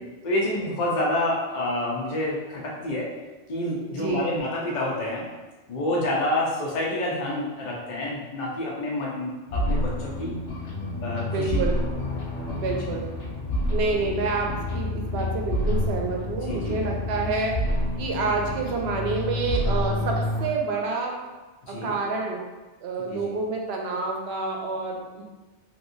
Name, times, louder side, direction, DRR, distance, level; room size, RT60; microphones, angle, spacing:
voice 1, 0.2-3.1 3.5-5.2 5.7-10.3 11.0-11.6 12.9-13.0 16.4-16.7 21.7-21.9 23.1-23.3, left 1 dB, 45° left, -4 dB, 0.8 m, -28 dB
voice 2, 3.9-4.3 11.3-11.8 12.6-13.1 13.7-17.6 18.0-21.2 21.7-22.4 22.8-25.2, right 3 dB, 65° right, 1 dB, 0.8 m, -28 dB
sound 1, 9.5-20.5, left 1 dB, 75° left, 0.9 m, -28 dB
3.2 x 2.9 x 2.6 m, 1.2 s
omnidirectional pair, 1.2 m